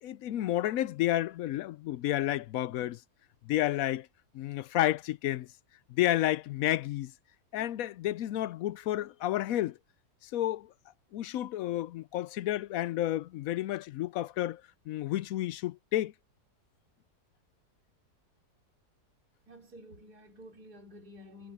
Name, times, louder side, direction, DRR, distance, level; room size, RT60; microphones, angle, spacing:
voice 1, 0.0-3.0 3.4-4.1 4.3-5.5 5.9-7.1 7.5-9.8 10.2-10.7 11.1-14.6 14.9-16.1, left 14 dB, 70° left, 0.9 m, -31 dB
voice 2, 19.5-21.5, left 1 dB, 70° right, 5.1 m, -51 dB
omnidirectional pair, 1.7 m